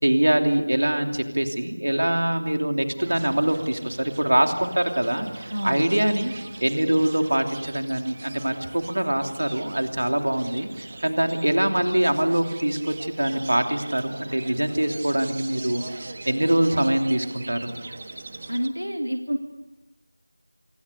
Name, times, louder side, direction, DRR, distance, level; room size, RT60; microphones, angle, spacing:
voice 1, 0.0-6.3 6.6-17.7, right 1 dB, 60° right, 5 dB, 3.0 m, -24 dB
sound 1, 3.0-18.7, right 3 dB, 25° right, 1.3 m, -41 dB
voice 2, 5.5-5.8 18.5-19.4, equal, 80° right, 5 dB, 2.2 m, -28 dB
26.0 x 24.0 x 6.7 m, 1.0 s
figure-of-eight pair, 170°, 0 cm